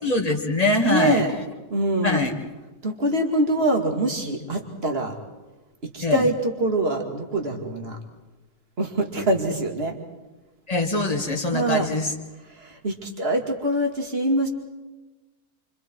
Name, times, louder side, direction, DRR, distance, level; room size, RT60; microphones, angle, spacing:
voice 1, 0.0-1.2 2.0-2.3 6.0-6.2 10.7-12.1, left 2 dB, 25° left, 2 dB, 2.5 m, -23 dB
voice 2, 0.8-1.4 1.7-2.2 2.8-5.1 5.8-8.0 8.8-9.9 11.5-11.9 12.5-14.5, right 1 dB, 40° right, 3 dB, 2.8 m, -24 dB
29.0 x 26.5 x 4.7 m, 1.1 s
omnidirectional pair, 1.6 m